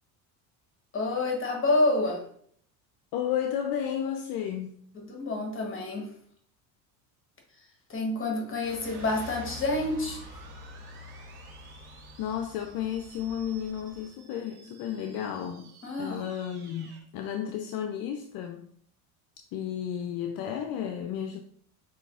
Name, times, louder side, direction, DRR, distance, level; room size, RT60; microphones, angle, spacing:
voice 1, 0.9-2.2 4.9-6.1 7.5-10.5 15.8-16.3, left 2 dB, 30° left, 1 dB, 1.1 m, -29 dB
voice 2, 3.1-4.7 12.2-18.7 19.5-21.4, left 9 dB, 55° left, 5 dB, 0.5 m, -33 dB
sound 1, 8.6-14.1, left 1 dB, 85° right, 1.3 m, -46 dB
sound 2, 8.9-17.0, right 5 dB, 55° right, 1.1 m, -54 dB
6.7 x 2.8 x 2.4 m, 0.63 s
hypercardioid pair, 80°, 45 cm